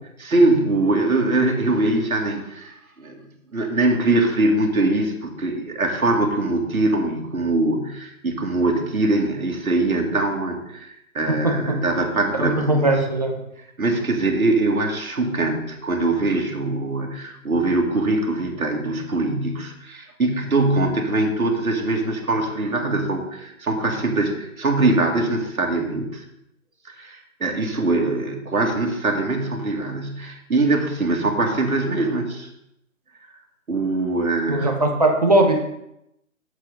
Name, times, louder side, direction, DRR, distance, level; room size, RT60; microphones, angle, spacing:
voice 1, 0.2-3.3 3.5-12.9 13.8-26.2 26.8-32.5 33.7-34.7, right 2 dB, 85° right, 1 dB, 2.4 m, -22 dB
voice 2, 11.3-11.8 12.4-13.4 34.5-35.6, right 2 dB, 30° right, 2 dB, 1.0 m, -20 dB
8.1 x 7.7 x 5.3 m, 0.82 s
hypercardioid pair, 180°, 42 cm